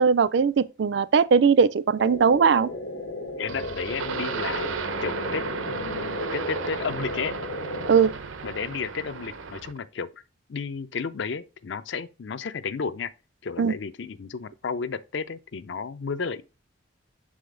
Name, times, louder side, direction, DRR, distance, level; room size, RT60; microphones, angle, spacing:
voice 1, 0.0-2.7 7.9-8.1 13.6-13.7, right 6 dB, 60° right, 0.4 m, -19 dB
sound 1, 2.0-8.1, left 2 dB, 85° left, 1.4 m, -35 dB
voice 2, 3.4-4.7 5.0-7.3 8.4-10.1 10.5-13.1 13.4-16.4, left 5 dB, 65° left, 0.5 m, -32 dB
sound 2, 3.5-9.8, right 5 dB, 85° right, 0.7 m, -34 dB
6.7 x 4.9 x 3.8 m
head